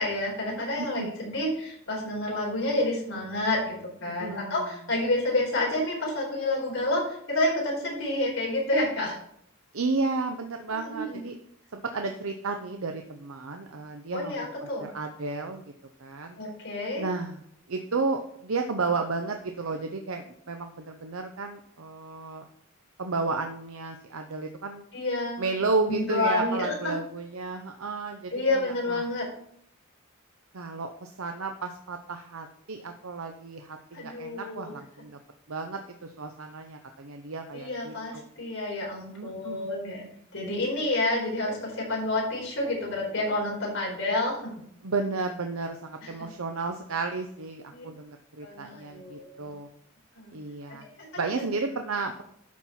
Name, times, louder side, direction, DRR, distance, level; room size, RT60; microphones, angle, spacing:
voice 1, 0.0-9.2 10.9-11.2 14.1-14.9 16.4-17.0 24.9-25.5 25.9-26.9 28.3-29.2 33.9-34.7 37.5-40.0 40.3-44.5 46.0-46.1 47.7-47.9 48.4-49.5 50.1-50.4 50.8-51.1, left 2 dB, 60° left, -3 dB, 4.3 m, -29 dB
voice 2, 0.8-1.1 4.2-4.7 9.7-11.4 11.7-15.7 16.0-16.4 17.0-17.4 17.7-22.4 23.0-24.8 25.4-29.1 30.5-35.2 35.5-38.2 39.1-40.1 44.8-49.7 50.3-50.9 51.2-52.2, right 3 dB, 75° right, 5 dB, 0.8 m, -33 dB
12.0 x 4.5 x 5.8 m, 0.69 s
head